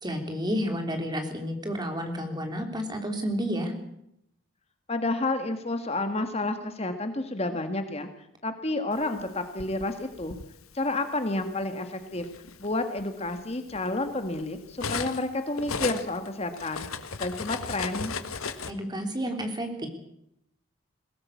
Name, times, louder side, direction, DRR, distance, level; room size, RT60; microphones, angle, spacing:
voice 1, 0.0-3.7 18.7-19.9, equal, 20° right, 5 dB, 3.4 m, -31 dB
voice 2, 4.9-8.1 8.4-10.4 10.7-12.3 12.6-16.8 17.2-18.1, left 2 dB, 30° left, 7 dB, 1.7 m, -30 dB
Cutlery silverware, 9.2-10.5 11.4-11.6 12.0-15.3 15.6-18.7, left 5 dB, 90° left, 1.5 m, -36 dB
21.0 x 17.5 x 8.4 m, 0.77 s
head